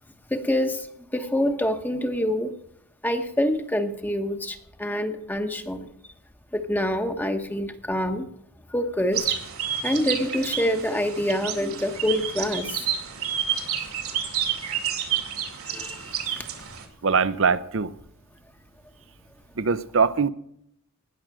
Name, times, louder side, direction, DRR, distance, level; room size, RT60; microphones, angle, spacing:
voice 1, 0.3-0.9 1.1-2.5 3.0-5.9 6.5-8.3 8.7-9.4 9.8-12.9 13.7-13.8 14.1-14.8 15.6-16.4, left 1 dB, 10° left, 1.0 m, -26 dB
sound 1, 9.1-16.8, right 9 dB, 90° right, 2.4 m, -30 dB
voice 2, 17.0-17.9 19.6-20.3, right 5 dB, 60° right, 0.7 m, -22 dB
19.0 x 6.6 x 7.6 m
head